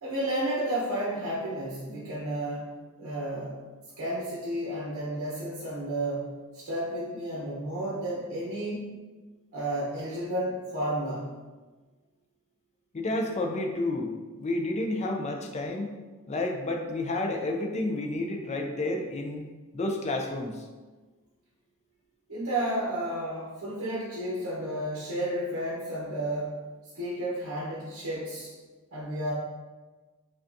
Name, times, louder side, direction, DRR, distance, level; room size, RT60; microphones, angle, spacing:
voice 1, 0.0-2.7 3.0-3.6 4.0-8.9 9.5-11.3 22.3-26.6 26.9-28.5 28.9-29.3, right 1 dB, 65° right, -7 dB, 0.9 m, -32 dB
voice 2, 12.9-16.0 16.3-19.5 19.7-20.6, left 2 dB, 30° left, 3 dB, 0.4 m, -30 dB
5.1 x 2.3 x 2.6 m, 1.3 s
head